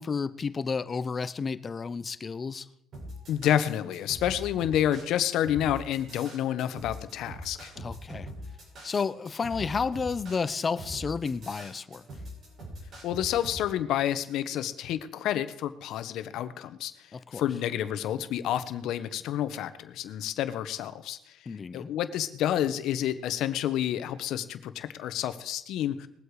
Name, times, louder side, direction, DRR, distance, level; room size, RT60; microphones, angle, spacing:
voice 1, 0.0-2.7 7.8-8.3 8.8-12.0 17.1-17.4 21.5-21.9, left 5 dB, 35° left, 0.7 m, -31 dB
sound 1, 2.9-13.6, equal, 55° right, 7.0 m, -42 dB
voice 2, 3.3-7.7 13.0-16.9 17.3-21.2 21.7-26.1, left 11 dB, 75° left, 1.0 m, -29 dB
20.5 x 8.0 x 4.8 m
cardioid pair, 100°, 0 cm